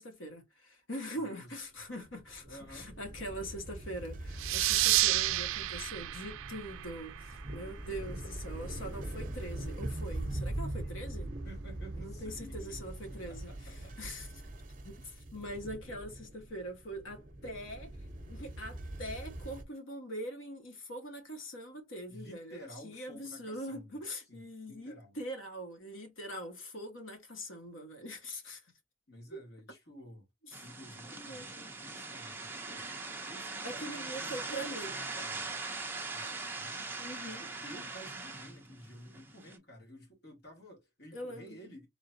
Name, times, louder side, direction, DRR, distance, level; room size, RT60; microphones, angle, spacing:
voice 1, 0.0-11.3 12.0-14.3 14.8-17.9 18.3-28.6 30.4-30.7 31.2-31.7 33.6-34.9 37.0-37.4 41.1-41.6, equal, 80° left, 1.6 m, -43 dB
voice 2, 1.3-1.8 2.5-2.9 4.7-5.7 7.6-8.0 10.8-11.0 11.4-14.0 22.1-24.0 24.3-24.4 24.6-25.2 29.1-30.3 30.6-32.9 33.3-35.5 36.1-36.9 37.2-41.9, equal, 55° left, 2.3 m, -52 dB
sound 1, 2.1-19.6, right 1 dB, 40° right, 0.8 m, -42 dB
sound 2, 4.4-7.6, right 17 dB, 90° right, 0.3 m, -30 dB
sound 3, 30.5-39.6, right 3 dB, 10° right, 0.6 m, -41 dB
3.8 x 3.5 x 2.7 m
head